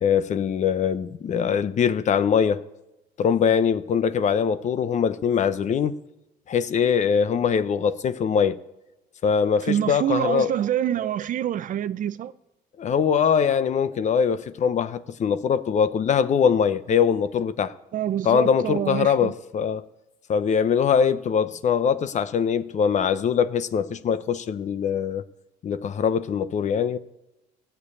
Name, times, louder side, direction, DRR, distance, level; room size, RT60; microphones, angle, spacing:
voice 1, 0.0-2.6 3.2-5.9 6.5-8.6 9.2-10.5 12.8-17.7 18.2-19.8 20.3-25.2 25.6-27.0, left 7 dB, 45° left, 0.7 m, -22 dB
voice 2, 9.6-12.3 17.9-19.3, right 10 dB, 50° right, 0.5 m, -26 dB
15.5 x 6.8 x 9.7 m
cardioid pair, 110°, 17 cm